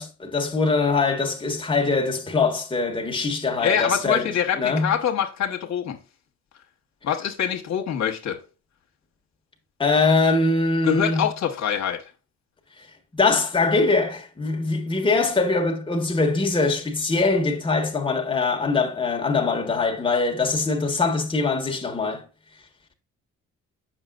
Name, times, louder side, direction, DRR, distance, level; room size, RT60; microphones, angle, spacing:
voice 1, 0.0-4.9 9.8-11.3 13.1-22.3, left 3 dB, 15° left, 1.3 m, -22 dB
voice 2, 3.6-6.0 7.0-8.4 10.8-12.0, left 9 dB, 65° left, 1.2 m, -25 dB
7.3 x 5.8 x 2.4 m
cardioid pair, 90°, 30 cm